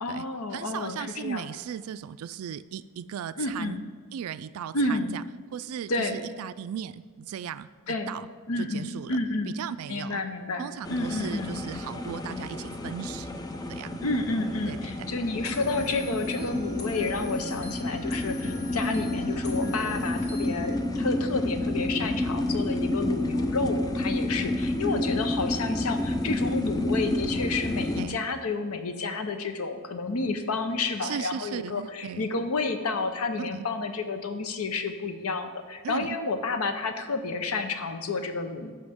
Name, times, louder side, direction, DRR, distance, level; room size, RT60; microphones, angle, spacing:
voice 1, 0.0-1.5 3.4-3.8 4.7-5.2 5.9-6.2 7.9-8.1 8.5-9.6 9.9-11.6 14.0-38.7, left 3 dB, 80° left, 8 dB, 0.8 m, -30 dB
voice 2, 0.5-3.8 4.1-5.2 5.5-7.7 8.1-8.3 8.6-9.2 9.5-10.2 10.6-13.4 13.7-14.0 14.7-15.2 16.4-16.5 18.8-19.0 24.4-24.5 28.0-28.2 31.0-32.3 33.4-33.6 35.8-36.2, right 8 dB, 75° right, 15 dB, 0.3 m, -37 dB
sound 1, 10.8-28.1, left 1 dB, 15° left, 0.4 m, -30 dB
sound 2, 15.4-20.7, left 2 dB, 50° left, 1.3 m, -44 dB
14.5 x 5.5 x 3.5 m, 1.5 s
head